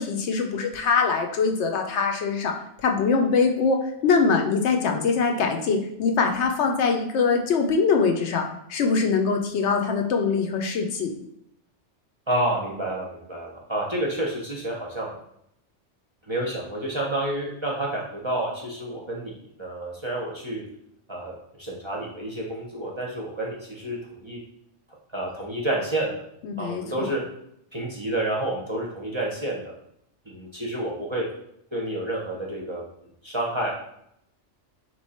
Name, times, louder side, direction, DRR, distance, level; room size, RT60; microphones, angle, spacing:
voice 1, 0.0-2.5 2.8-11.2 26.4-27.1, left 5 dB, 70° left, 3 dB, 0.8 m, -23 dB
voice 2, 12.3-15.2 16.3-20.6 21.1-24.4 25.1-26.2 26.6-27.2 27.7-29.7 30.3-31.2 31.7-32.8 33.2-33.7, right 1 dB, 30° right, -3 dB, 0.6 m, -29 dB
3.7 x 3.0 x 4.2 m, 0.74 s
omnidirectional pair, 1.2 m